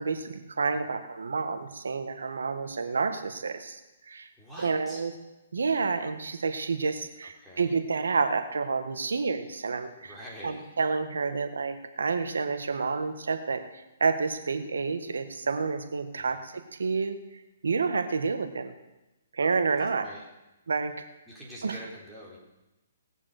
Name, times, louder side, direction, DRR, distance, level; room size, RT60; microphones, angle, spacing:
voice 1, 0.0-3.8 4.1-4.3 4.6-5.1 5.5-10.1 10.4-13.6 14.0-17.2 17.6-18.7 19.3-20.1 20.7-20.9 21.6-21.8, right 4 dB, 90° right, 8 dB, 1.7 m, -29 dB
voice 2, 0.6-1.0 4.4-5.1 7.2-7.8 10.0-10.8 16.2-16.5 19.8-20.2 21.3-22.4, equal, ahead, -7 dB, 3.9 m, -46 dB
19.5 x 7.3 x 6.7 m, 1.0 s
hypercardioid pair, 150°, 0 cm